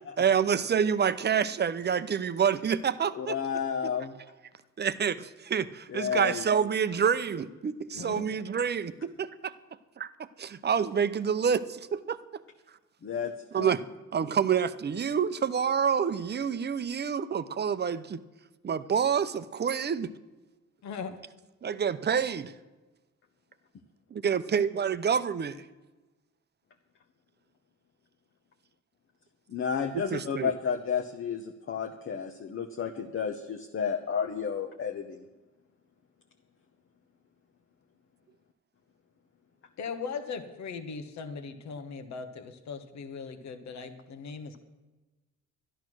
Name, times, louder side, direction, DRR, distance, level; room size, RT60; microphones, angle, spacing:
voice 1, 0.2-3.4 4.8-9.5 10.0-10.1 10.4-12.4 13.5-13.8 14.1-18.2 18.6-20.1 21.6-22.5 24.1-25.6 30.1-30.5, right 7 dB, 35° right, 14 dB, 0.6 m, -28 dB
voice 2, 3.1-4.1 5.9-6.4 13.0-13.3 13.6-13.8 29.5-35.2, left 7 dB, 45° left, 4 dB, 0.9 m, -31 dB
voice 3, 39.8-44.6, left 5 dB, 65° left, 8 dB, 1.3 m, -39 dB
13.0 x 10.5 x 6.2 m, 1.2 s
cardioid pair, 90°, 30 cm